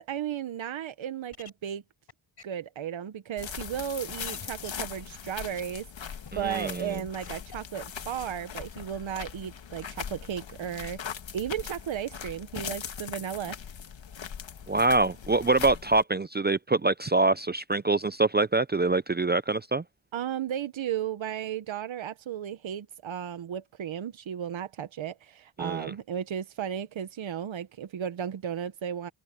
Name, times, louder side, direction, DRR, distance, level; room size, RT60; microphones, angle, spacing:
voice 1, 0.0-1.8 2.4-13.6 20.1-29.1, right 9 dB, 80° right, 1.0 m, -35 dB
sound 1, 1.3-1.5 2.1-2.2 2.4-2.5 3.3-3.4 4.2-4.7 5.6-5.7 6.1-6.3 7.2-7.6 8.1-8.2, left 6 dB, 60° left, 6.5 m, -46 dB
sound 2, 3.4-16.0, left 7 dB, 80° left, 1.6 m, -40 dB
voice 2, 6.3-7.0 14.7-19.8 25.6-25.9, right 3 dB, 25° right, 0.5 m, -25 dB
wide cardioid pair, 100°, 45 cm